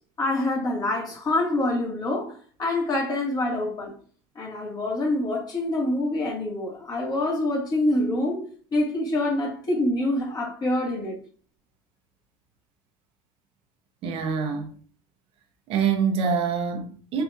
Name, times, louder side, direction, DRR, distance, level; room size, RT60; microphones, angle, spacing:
voice 1, 0.2-3.9 4.4-8.4 8.7-11.2, left 1 dB, 35° left, 2.2 m, -26 dB
voice 2, 14.0-14.7 15.7-17.2, right 6 dB, 55° right, 0.9 m, -25 dB
4.7 x 3.4 x 2.6 m
supercardioid pair, 95°, 12 cm